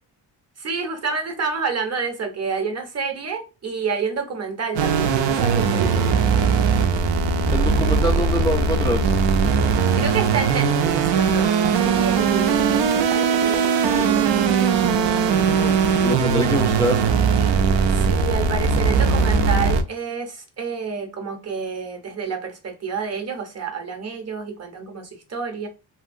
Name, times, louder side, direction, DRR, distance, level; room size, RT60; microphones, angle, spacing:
voice 1, 0.6-6.4 10.0-14.5 17.7-25.7, right 5 dB, 35° right, 0.8 m, -29 dB
sound 1, 4.8-19.8, right 5 dB, 75° right, 0.6 m, -19 dB
voice 2, 7.5-9.1 15.4-17.0, left 1 dB, 10° left, 0.3 m, -25 dB
2.7 x 2.7 x 2.6 m
cardioid pair, 110°, 44 cm